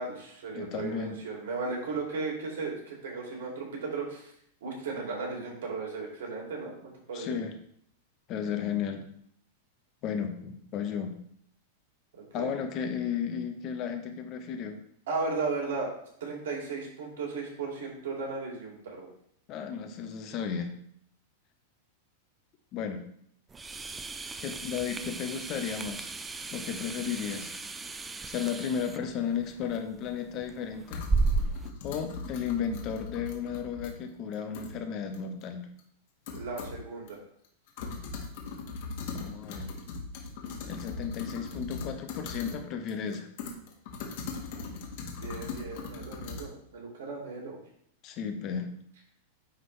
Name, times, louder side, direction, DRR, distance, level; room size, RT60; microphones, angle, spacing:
voice 1, 0.0-4.3 4.6-7.4 12.3-12.5 15.1-15.9 16.2-19.1 36.3-37.2 45.2-47.6, right 4 dB, 80° right, -1 dB, 2.7 m, -35 dB
voice 2, 0.5-1.2 7.1-7.5 8.3-9.0 10.0-11.1 12.3-14.8 19.5-20.7 22.7-23.0 24.4-26.1 26.5-27.5 28.3-31.0 31.8-35.7 39.1-39.7 40.7-43.3 48.0-48.7, left 7 dB, 40° left, 6 dB, 1.0 m, -34 dB
sound 1, 23.5-31.7, right 3 dB, 10° right, 0.4 m, -34 dB
sound 2, 30.0-30.1 30.9-33.9 34.3-34.7 35.1-35.2 35.8-35.9 36.3-36.8 37.1-37.2 37.4-42.6 42.9-46.4, left 4 dB, 60° left, 1.7 m, -39 dB
9.7 x 3.9 x 3.3 m, 0.68 s
supercardioid pair, 140°, 0 cm